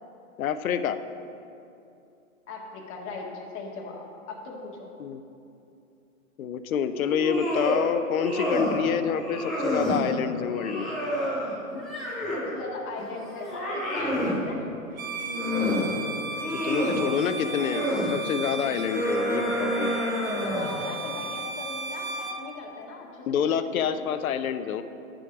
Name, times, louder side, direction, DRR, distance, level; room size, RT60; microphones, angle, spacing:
voice 1, 0.4-1.0 5.0-5.2 6.4-10.9 16.5-17.8 18.1-20.0 23.3-24.8, left 8 dB, 75° left, 11 dB, 0.7 m, -27 dB
voice 2, 2.5-3.3 3.5-4.9 12.3-14.6 16.5-17.7 20.2-24.1, left 3 dB, 30° left, -2 dB, 1.9 m, -39 dB
sound 1, 6.9-7.8 8.1-8.8 9.2-10.0 10.5-12.5 13.0-14.4 15.0-15.9 16.3-17.0 17.5-18.1 18.6-20.8, equal, ahead, 0.3 m, -29 dB
Bowed string instrument, 14.9-22.4, right 3 dB, 70° right, 1.1 m, -35 dB
10.5 x 5.1 x 5.9 m, 2.7 s
hypercardioid pair, 130°, 42 cm